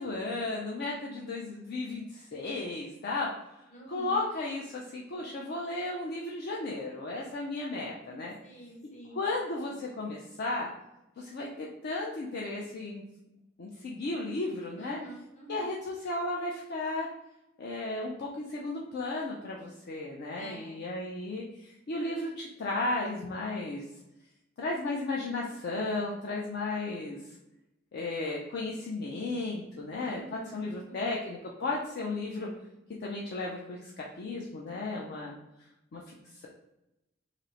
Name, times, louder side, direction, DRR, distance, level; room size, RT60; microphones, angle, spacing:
voice 1, 0.0-3.3 3.9-8.4 9.1-10.7 11.2-13.0 13.6-15.0 15.5-17.1 17.6-23.8 24.6-27.2 27.9-32.5 33.0-35.3 35.9-36.0 36.3-36.5, left 2 dB, 50° left, -2 dB, 0.4 m, -34 dB
voice 2, 3.7-4.2 8.4-9.2 14.8-15.7 20.4-20.8 30.0-31.1, equal, 35° left, -2 dB, 0.8 m, -47 dB
2.9 x 2.0 x 3.7 m, 0.92 s
head